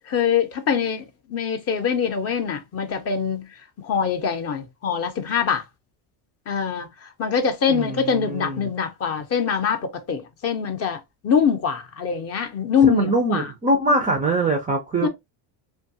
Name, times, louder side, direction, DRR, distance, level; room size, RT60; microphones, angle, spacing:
voice 1, 0.0-3.5 3.8-5.6 6.5-6.9 7.2-13.5 15.0-15.1, left 7 dB, 35° left, 0.5 m, -23 dB
voice 2, 7.7-8.7 12.8-15.1, right 2 dB, 20° right, 0.3 m, -23 dB
2.7 x 2.2 x 2.6 m
cardioid pair, 125°, 45 cm